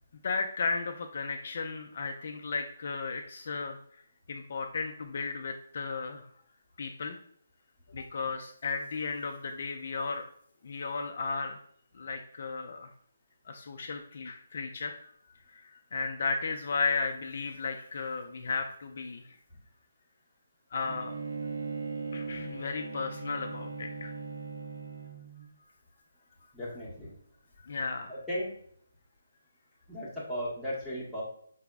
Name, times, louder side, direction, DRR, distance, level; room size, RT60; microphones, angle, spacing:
voice 1, 0.2-3.8 4.3-6.3 6.8-7.2 7.9-10.2 10.6-11.6 11.9-12.9 13.5-15.1 15.5-19.4 20.7-21.2 22.1-24.1 27.6-28.1, left 4 dB, 40° left, 3 dB, 0.3 m, -34 dB
Bowed string instrument, 20.8-25.5, right 4 dB, 50° right, 0.6 m, -39 dB
voice 2, 26.5-27.1 28.1-28.5 29.9-31.2, equal, ahead, -10 dB, 0.8 m, -36 dB
4.6 x 2.0 x 3.4 m, 0.63 s
hypercardioid pair, 175°, 0 cm